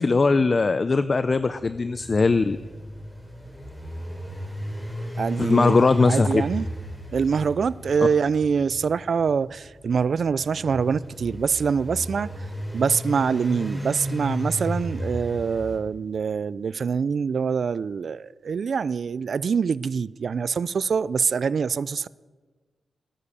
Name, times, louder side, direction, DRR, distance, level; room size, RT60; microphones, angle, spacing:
voice 1, 0.0-2.6 5.4-6.4, left 3 dB, 40° left, 0.5 m, -20 dB
sound 1, 1.3-15.8, equal, 5° left, 4.0 m, -34 dB
voice 2, 5.2-6.7 7.1-12.3 12.7-22.1, right 6 dB, 65° right, 0.4 m, -25 dB
17.0 x 10.0 x 7.0 m
cardioid pair, 85°, 0 cm